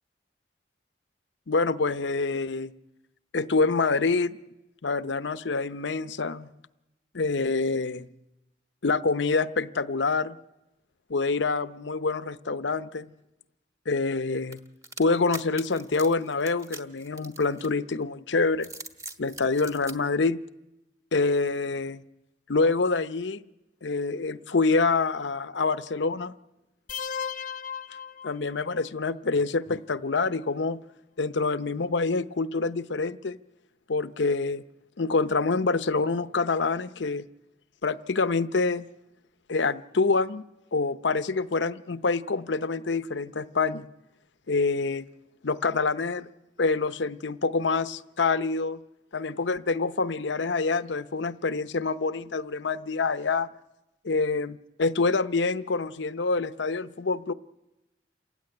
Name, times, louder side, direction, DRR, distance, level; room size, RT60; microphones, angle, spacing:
voice 1, 1.5-2.7 3.3-4.4 4.8-6.5 7.1-8.1 8.8-10.4 11.1-13.1 13.9-14.6 15.0-18.7 19.2-20.4 21.1-22.0 22.5-23.4 23.8-26.3 28.2-30.8 31.2-33.4 33.9-34.6 35.0-37.3 37.8-38.9 39.5-40.4 40.7-43.9 44.5-45.1 45.4-46.3 46.6-48.8 49.1-53.5 54.0-57.3, left 4 dB, 80° left, 14 dB, 0.7 m, -26 dB
sound 1, 14.5-18.0 18.5-20.0, right 2 dB, 15° right, 1.2 m, -42 dB
sound 2, 26.9-28.8, left 7 dB, 45° left, 0.8 m, -36 dB
28.0 x 16.0 x 9.6 m, 0.98 s
head